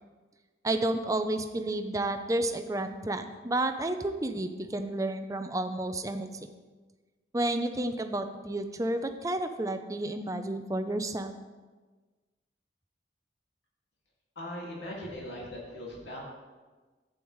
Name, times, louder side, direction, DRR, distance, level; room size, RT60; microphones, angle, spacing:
voice 1, 0.6-6.3 7.3-11.3, right 1 dB, 20° right, 8 dB, 0.5 m, -31 dB
voice 2, 14.4-16.2, left 1 dB, 75° left, -4 dB, 2.2 m, -39 dB
11.5 x 8.7 x 3.1 m, 1.3 s
head